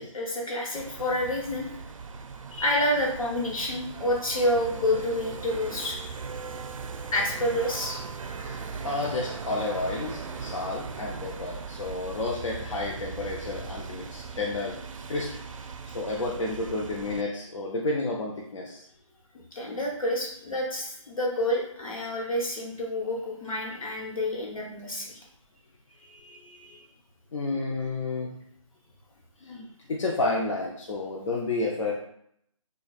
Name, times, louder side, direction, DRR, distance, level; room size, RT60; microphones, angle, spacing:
voice 1, 0.0-1.7 2.5-6.1 7.1-8.0 19.5-25.2, left 1 dB, 90° left, -1 dB, 1.1 m, -28 dB
sound 1, 0.7-17.2, right 5 dB, 75° right, 0.4 m, -39 dB
voice 2, 8.4-14.8 15.1-15.3 15.6-18.8 25.9-26.9 27.3-28.4 29.4-32.0, left 2 dB, 65° left, -2 dB, 0.6 m, -31 dB
4.3 x 2.3 x 2.3 m, 0.71 s
hypercardioid pair, 165°, 17 cm